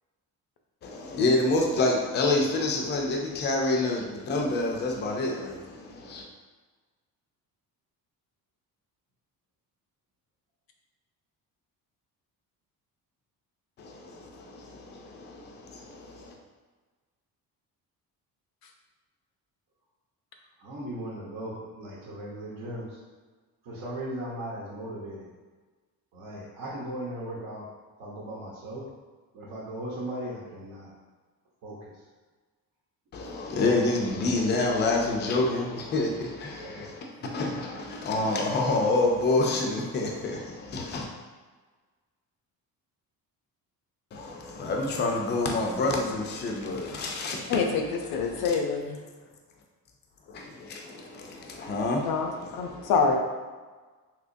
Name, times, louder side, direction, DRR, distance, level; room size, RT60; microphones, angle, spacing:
voice 1, 0.8-6.2 13.8-16.4 33.1-41.1 44.1-47.7 48.3-48.6 50.3-52.9, left 2 dB, 30° left, 0 dB, 0.4 m, -28 dB
voice 2, 20.6-22.9 23.7-25.3 26.1-27.7 28.0-28.8 29.3-30.9 31.6-31.9 36.6-36.9, right 1 dB, 65° right, -6 dB, 0.9 m, -37 dB
voice 3, 47.5-49.0 52.0-53.2, left 5 dB, 80° left, 3 dB, 0.6 m, -26 dB
3.6 x 2.9 x 2.6 m, 1.4 s
cardioid pair, 160°, 36 cm